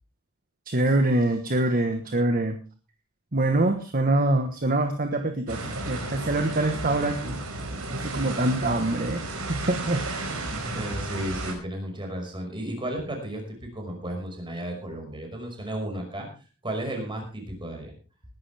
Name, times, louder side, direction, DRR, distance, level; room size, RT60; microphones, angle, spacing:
voice 1, 0.7-2.6 3.3-7.4 7.9-9.2 9.5-10.0, right 2 dB, 40° right, 6 dB, 1.3 m, -24 dB
sound 1, 5.5-11.5, right 2 dB, 85° right, 5.0 m, -33 dB
voice 2, 10.6-16.3 16.6-17.9, right 1 dB, 25° right, 2 dB, 5.5 m, -33 dB
20.0 x 11.5 x 3.5 m, 0.36 s
head